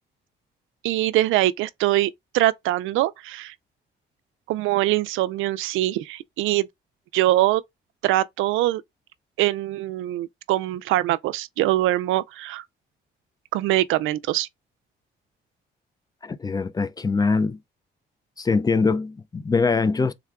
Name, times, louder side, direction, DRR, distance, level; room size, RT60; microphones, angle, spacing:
voice 1, 0.8-3.5 4.5-6.7 7.1-7.6 8.0-8.8 9.4-12.6 13.5-14.5, right 15 dB, 90° right, 0.4 m, -23 dB
voice 2, 16.2-17.6 18.4-20.1, left 4 dB, 20° left, 0.3 m, -23 dB
3.6 x 2.2 x 3.5 m
cardioid pair, 90°, 20 cm